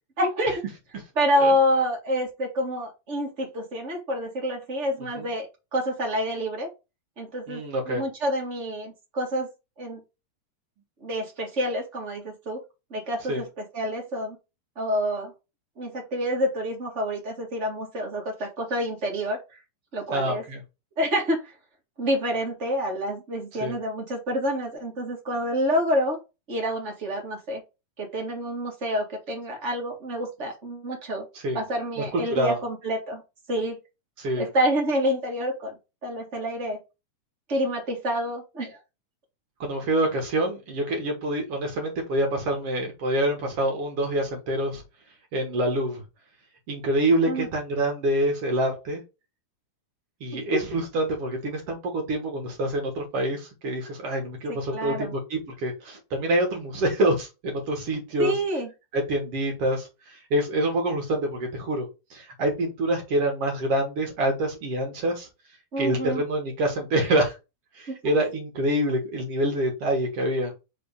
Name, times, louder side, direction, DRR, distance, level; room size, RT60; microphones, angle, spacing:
voice 1, 0.2-0.6 1.1-5.5 5.7-6.7 7.2-9.5 9.8-10.0 11.0-12.6 12.9-14.4 14.7-15.3 15.8-19.4 19.9-20.4 21.0-21.4 22.0-26.2 26.5-27.6 28.0-31.3 31.5-33.2 33.5-33.8 34.4-35.7 36.0-36.8 37.5-38.8 47.2-47.5 50.3-50.6 54.5-55.1 58.2-58.7 65.7-66.2 67.9-68.1, equal, 30° right, 0 dB, 1.4 m, -27 dB
voice 2, 7.5-8.0 13.3-13.4 20.1-20.6 23.6-23.8 31.4-31.6 32.0-32.6 34.2-34.5 39.6-44.8 45.3-46.0 46.7-49.0 50.2-58.3 58.9-65.3 65.8-67.4 67.8-70.5, right 1 dB, 55° right, 2 dB, 2.1 m, -26 dB
5.7 x 3.4 x 5.2 m, 0.27 s
omnidirectional pair, 3.7 m